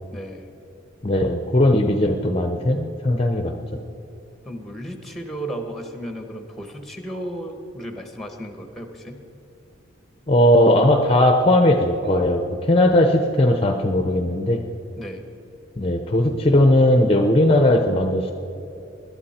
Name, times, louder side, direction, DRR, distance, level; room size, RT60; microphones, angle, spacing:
voice 1, 0.1-0.5 4.4-9.3 15.0-15.3, right 1 dB, ahead, 5 dB, 1.3 m, -34 dB
voice 2, 1.0-3.5 10.3-14.7 15.8-18.3, left 1 dB, 30° left, 5 dB, 0.8 m, -18 dB
20.5 x 12.0 x 4.4 m, 3.0 s
head